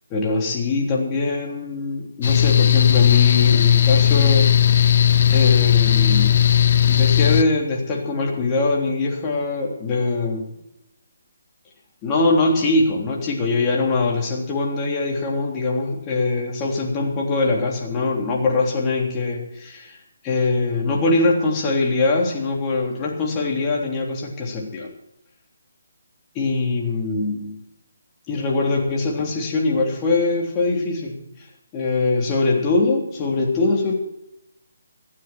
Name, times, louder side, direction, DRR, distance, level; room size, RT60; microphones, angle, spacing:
voice 1, 0.1-4.6 5.3-6.5 6.9-10.5 12.0-20.0 20.2-24.9 26.3-27.6 28.3-31.2 31.7-33.9, left 3 dB, 20° left, -1 dB, 3.3 m, -22 dB
Mechanical fan, 2.2-7.4, left 10 dB, 40° left, 1.0 m, -16 dB
25.5 x 9.6 x 4.4 m, 0.84 s
figure-of-eight pair, 145°, 0 cm